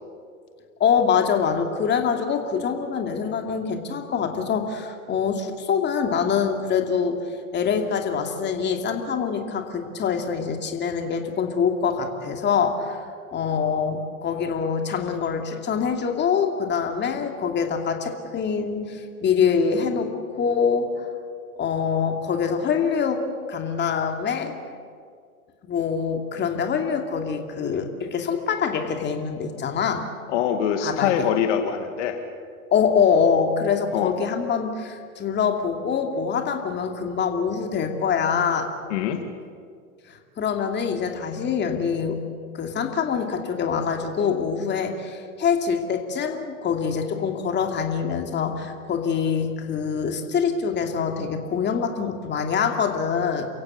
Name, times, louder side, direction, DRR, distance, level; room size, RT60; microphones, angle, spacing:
voice 1, 0.8-7.2 7.5-13.0 13.3-20.9 21.6-23.2 23.5-24.5 25.7-30.0 30.8-31.1 32.7-38.7 40.1-42.2 42.5-53.5, left 6 dB, 25° left, 4 dB, 2.6 m, -24 dB
voice 2, 30.3-32.2 33.9-34.1 38.9-39.2, left 9 dB, 55° left, 6 dB, 2.0 m, -24 dB
28.5 x 16.0 x 8.6 m, 2.2 s
hypercardioid pair, 105°, 43 cm